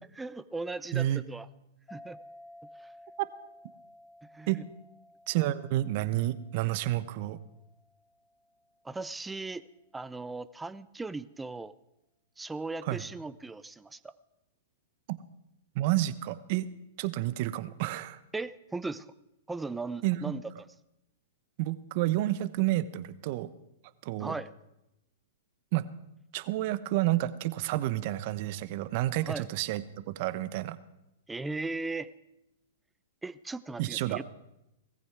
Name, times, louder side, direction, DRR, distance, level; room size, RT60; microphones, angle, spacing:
voice 1, 0.2-1.5 1.9-2.2 4.3-4.6 8.8-9.6 9.9-11.7 12.4-14.1 18.3-19.1 19.5-20.4 24.2-24.5 29.2-29.4 31.3-32.1 33.2-34.2, right 3 dB, 10° right, 15 dB, 0.7 m, -37 dB
voice 2, 0.9-1.2 3.2-3.3 4.5-4.6 5.3-7.4 12.8-13.0 15.7-16.7 17.0-18.2 20.0-20.4 21.6-23.5 24.0-24.3 25.7-25.9 26.3-30.8 33.8-34.2, right 15 dB, 50° right, 15 dB, 1.0 m, -30 dB
sound 1, 1.9-8.9, left 1 dB, 20° left, 3.9 m, -55 dB
18.0 x 15.0 x 4.8 m, 0.88 s
hypercardioid pair, 115°, 0 cm